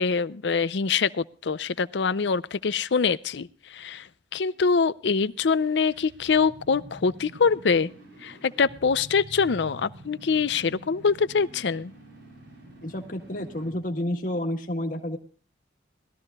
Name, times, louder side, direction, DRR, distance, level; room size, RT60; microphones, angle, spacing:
voice 1, 0.0-4.1 4.3-7.9 8.2-11.9, left 5 dB, 75° left, 16 dB, 0.5 m, -24 dB
sound 1, 5.3-14.0, right 1 dB, 80° right, 4.2 m, -47 dB
voice 2, 12.8-15.2, left 1 dB, 45° left, 3 dB, 1.6 m, -30 dB
20.5 x 13.5 x 2.3 m, 0.40 s
head